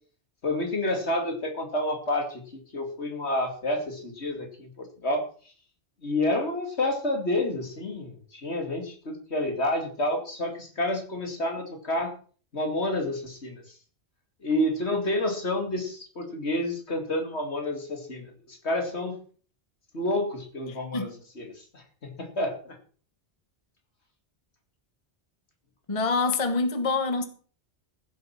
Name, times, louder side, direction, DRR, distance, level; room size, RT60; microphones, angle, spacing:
voice 1, 0.4-2.4 2.7-5.3 6.0-12.1 12.5-13.7 14.4-19.2 19.9-21.1 21.4-22.8, left 1 dB, 70° left, 3.0 m, -29 dB
voice 2, 20.7-21.1 25.9-27.2, left 3 dB, 30° left, 1.2 m, -26 dB
15.0 x 8.0 x 6.0 m
omnidirectional pair, 1.1 m